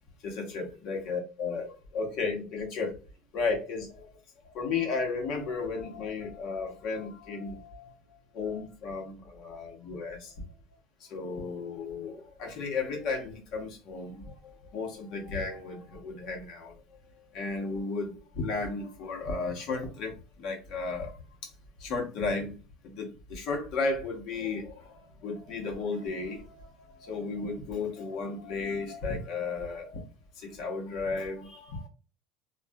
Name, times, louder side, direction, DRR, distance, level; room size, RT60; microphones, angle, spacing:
voice 1, 0.2-2.9 3.3-4.1 4.5-7.9 8.3-10.4 11.1-16.7 17.3-20.1 20.4-21.1 21.8-22.5 22.8-30.0 30.4-31.9, left 4 dB, 55° left, 1.1 m, -34 dB
2.5 x 2.4 x 2.2 m
supercardioid pair, 135°, 0 cm